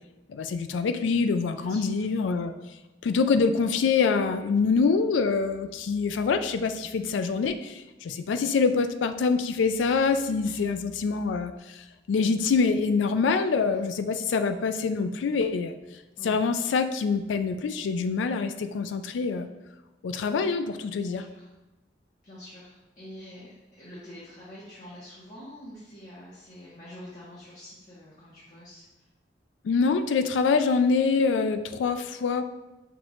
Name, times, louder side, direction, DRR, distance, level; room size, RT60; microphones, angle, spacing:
voice 1, 0.3-2.5 3.0-11.5 12.1-15.7 16.2-19.5 20.0-21.2 29.6-32.4, left 4 dB, 90° left, 9 dB, 0.3 m, -25 dB
voice 2, 1.5-1.8 5.7-5.8 10.4-10.6 13.6-13.8 16.2-16.4 21.0-21.5 22.2-28.8, left 1 dB, 40° left, -9 dB, 1.0 m, -46 dB
5.9 x 2.5 x 3.0 m, 1.0 s
head